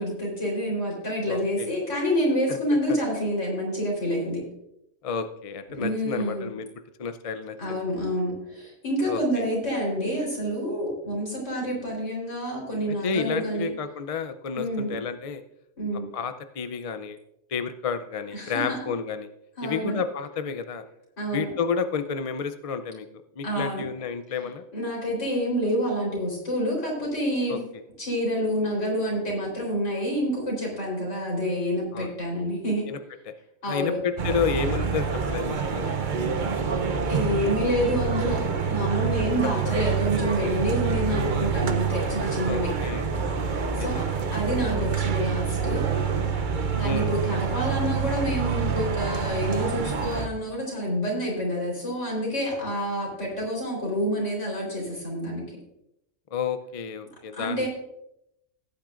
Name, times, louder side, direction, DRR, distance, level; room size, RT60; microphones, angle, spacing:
voice 1, 0.0-4.4 5.7-6.5 7.6-13.7 14.5-15.0 15.8-16.1 18.3-18.8 19.6-19.9 21.2-21.5 23.4-23.8 24.7-27.6 28.0-32.9 33.6-34.0 37.1-42.7 43.7-44.1 44.3-45.9 46.8-55.5 57.3-57.7, equal, 65° left, -2 dB, 4.4 m, -28 dB
voice 2, 1.3-1.7 2.5-2.6 5.0-6.7 7.0-7.8 9.1-9.5 13.0-15.4 16.1-17.2 17.5-19.3 19.6-20.8 21.3-23.1 23.4-24.6 27.5-27.6 31.9-32.1 32.9-33.0 33.7-36.2 42.4-43.1 43.8-44.1 46.8-47.1 56.3-57.7, left 6 dB, 45° left, 9 dB, 0.4 m, -31 dB
sound 1, 34.2-50.3, right 6 dB, 45° right, 0.8 m, -27 dB
17.0 x 8.9 x 2.5 m, 0.82 s
omnidirectional pair, 1.4 m